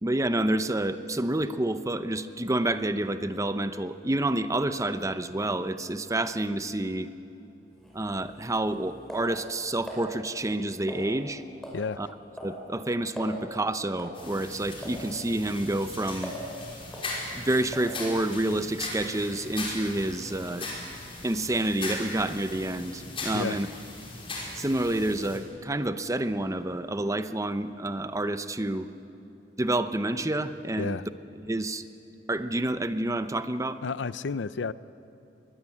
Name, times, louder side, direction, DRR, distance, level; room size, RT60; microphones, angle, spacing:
voice 1, 0.0-7.1 7.9-11.4 12.0-12.1 12.4-16.3 17.3-20.7 21.2-23.7 24.5-28.9 29.6-31.0 31.5-31.8 32.3-33.8, right 1 dB, 20° right, 11 dB, 0.7 m, -28 dB
sound 1, 7.8-10.0 10.9-11.3 11.6-11.9 12.1-12.6 12.9-13.0 13.2-13.4 14.0-14.2 14.8-15.0 15.5-16.5 16.9-17.1 17.7-18.0, equal, 5° left, 5.7 m, -41 dB
sound 2, 14.1-25.4, left 2 dB, 30° left, 5.3 m, -39 dB
voice 2, 33.8-34.7, left 5 dB, 75° left, 17 dB, 0.5 m, -31 dB
23.0 x 20.0 x 8.5 m, 2.8 s
head